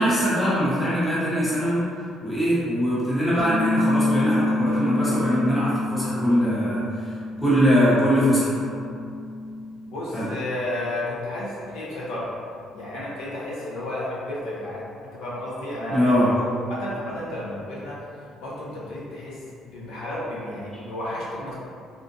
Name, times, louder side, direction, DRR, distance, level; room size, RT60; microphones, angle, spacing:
voice 1, 0.0-1.8 2.2-8.6 10.1-10.3 15.9-16.3, equal, 10° left, -10 dB, 0.9 m, -22 dB
sound 1, 3.4-9.6, left 2 dB, 15° right, 0.4 m, -27 dB
voice 2, 9.9-12.3 12.7-16.5 16.8-18.0 18.4-19.4 19.6-21.5, left 1 dB, 70° left, -7 dB, 0.8 m, -32 dB
3.5 x 2.5 x 2.6 m, 2.4 s
cardioid pair, 165°, 0 cm